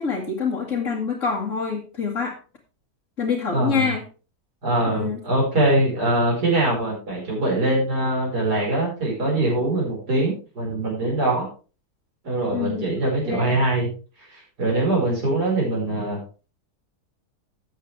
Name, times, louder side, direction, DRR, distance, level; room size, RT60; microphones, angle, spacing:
voice 1, 0.0-2.4 3.2-4.0 4.9-5.2 12.5-12.9 13.3-13.5, left 5 dB, 55° left, -4 dB, 2.3 m, -26 dB
voice 2, 3.5-3.9 4.6-11.5 12.2-13.9 14.3-16.2, right 2 dB, 85° right, -3 dB, 5.6 m, -23 dB
13.5 x 8.2 x 3.3 m, 0.35 s
omnidirectional pair, 1.7 m